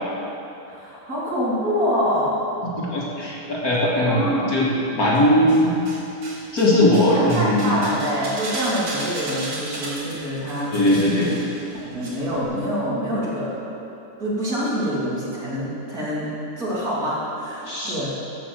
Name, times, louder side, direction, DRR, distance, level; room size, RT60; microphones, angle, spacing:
voice 1, 0.7-2.5 4.1-4.6 7.1-10.7 11.1-11.4 11.7-13.5 14.2-16.3 16.6-18.1, equal, 45° right, -8 dB, 3.2 m, -26 dB
voice 2, 2.8-4.7 4.9-5.7 6.5-7.8 10.7-11.3 17.7-17.9, left 1 dB, 50° left, -5 dB, 2.0 m, -19 dB
sound 1, 5.1-6.0 6.2-12.1 12.3-12.4, right 2 dB, 60° right, 3.1 m, -34 dB
14.0 x 6.0 x 7.5 m, 2.9 s
omnidirectional pair, 2.2 m